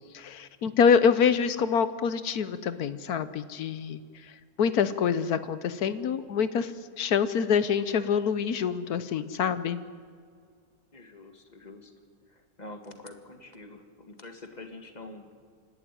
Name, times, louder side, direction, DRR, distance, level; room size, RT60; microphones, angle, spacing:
voice 1, 0.1-4.0 4.6-6.7 7.0-9.8, left 7 dB, 70° left, 13 dB, 1.3 m, -25 dB
voice 2, 10.9-11.9 12.3-15.3, left 2 dB, 25° left, 5 dB, 1.9 m, -46 dB
25.5 x 12.0 x 9.9 m, 2.1 s
omnidirectional pair, 1.7 m